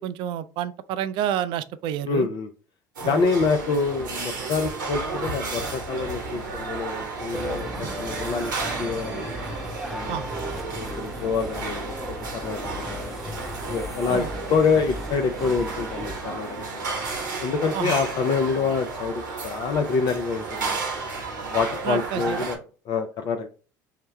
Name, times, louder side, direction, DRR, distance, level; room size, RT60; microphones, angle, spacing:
voice 1, 0.0-2.3 3.0-3.2 7.8-7.9 10.1-10.2 14.1-14.3 17.7-18.0 21.9-22.5, right 10 dB, 55° right, 0.4 m, -29 dB
voice 2, 2.0-2.5 3.0-8.5 8.8-9.3 9.9-10.3 10.7-11.9 12.3-13.3 13.7-16.8 17.4-20.8 21.5-22.6 22.9-23.5, left 5 dB, 45° left, 0.5 m, -26 dB
sound 1, 3.0-22.6, right 3 dB, 85° right, 1.2 m, -33 dB
sound 2, 7.3-16.2, equal, ahead, 0.6 m, -35 dB
5.6 x 2.2 x 3.3 m
hypercardioid pair, 65°, 10 cm